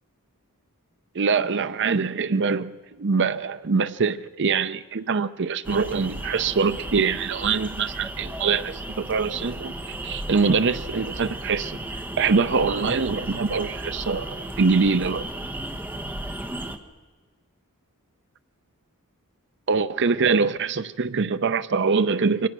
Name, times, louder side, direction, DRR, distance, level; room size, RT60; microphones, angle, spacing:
voice 1, 1.1-2.7 3.0-11.8 12.2-15.3 19.7-22.5, right 4 dB, 55° right, 13 dB, 0.6 m, -24 dB
sound 1, 5.6-16.8, right 1 dB, 10° right, 1.0 m, -34 dB
23.5 x 18.5 x 6.1 m, 1.4 s
head